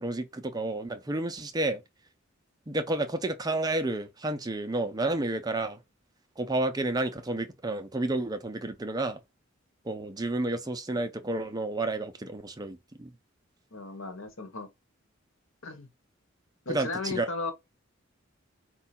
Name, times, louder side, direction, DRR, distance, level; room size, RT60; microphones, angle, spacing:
voice 1, 0.0-1.8 2.7-5.8 6.4-9.2 9.8-13.1 16.7-17.3, right 2 dB, 20° right, 0.5 m, -31 dB
voice 2, 13.7-14.7 15.6-15.9 16.6-17.5, left 3 dB, 75° left, 1.2 m, -35 dB
4.6 x 2.3 x 4.2 m
head